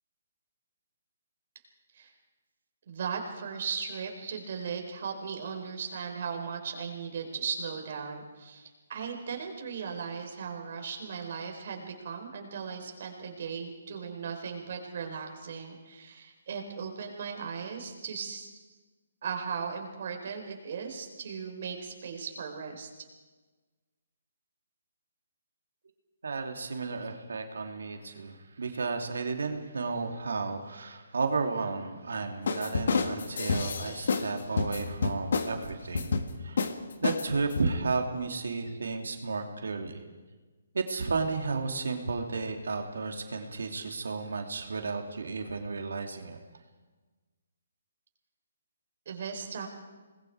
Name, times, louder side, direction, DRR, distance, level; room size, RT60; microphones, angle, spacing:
voice 1, 2.9-18.6 19.2-22.9 49.1-49.7, right 6 dB, 50° right, 3 dB, 4.4 m, -37 dB
voice 2, 26.2-36.7 37.0-40.0 40.7-46.4, right 4 dB, 85° right, 4 dB, 2.8 m, -33 dB
sound 1, 32.5-34.3 34.6-35.5 35.9-36.3 36.6-36.7 37.0-37.7, left 4 dB, 65° left, 1.9 m, -29 dB
27.5 x 20.5 x 4.8 m, 1.3 s
hypercardioid pair, 165°, 0 cm